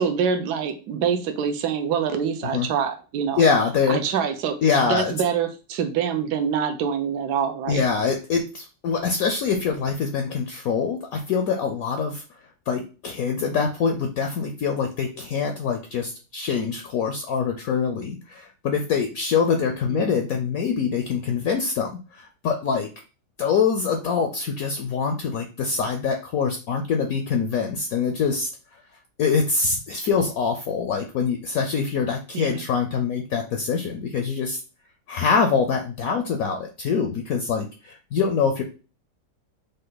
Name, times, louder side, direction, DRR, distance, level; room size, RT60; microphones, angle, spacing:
voice 1, 0.0-3.4 3.9-4.6 4.8-7.8 19.9-20.2 32.3-32.6, right 7 dB, 70° right, 6 dB, 1.2 m, -25 dB
voice 2, 3.4-4.0 4.6-5.1 7.7-12.2 12.7-22.9 23.4-28.5 29.2-34.6 35.1-38.6, left 5 dB, 65° left, 4 dB, 0.9 m, -24 dB
5.3 x 2.2 x 3.8 m, 0.34 s
omnidirectional pair, 1.9 m